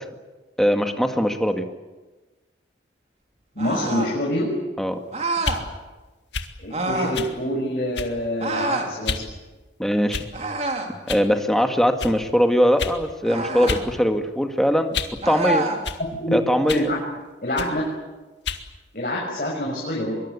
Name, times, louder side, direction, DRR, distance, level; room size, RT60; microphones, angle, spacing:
voice 1, 0.6-1.6 4.8-4.9 9.8-10.3 11.1-15.0 15.2-15.7 16.3-16.9, equal, ahead, 5 dB, 1.9 m, -21 dB
voice 2, 3.5-4.5 6.6-9.3 16.2-16.3 16.7-17.0 17.4-17.8 18.9-20.2, left 1 dB, 50° left, -3 dB, 6.2 m, -26 dB
sound 1, 3.6-4.2 5.1-5.6 6.7-7.2 8.4-8.9 10.3-11.0 13.2-13.8 15.2-15.8, right 2 dB, 35° right, 3.2 m, -26 dB
sound 2, 5.4-5.6 6.3-6.5 7.1-7.3 7.9-8.3 9.0-9.3 10.1-10.5 11.1-11.3 12.0-12.2 12.8-13.0 13.7-13.9 14.2-15.2 15.8-16.0 16.7-16.9 17.6-17.8 18.4-18.7, left 5 dB, 80° left, 2.0 m, -30 dB
24.5 x 23.0 x 8.4 m, 1.2 s
head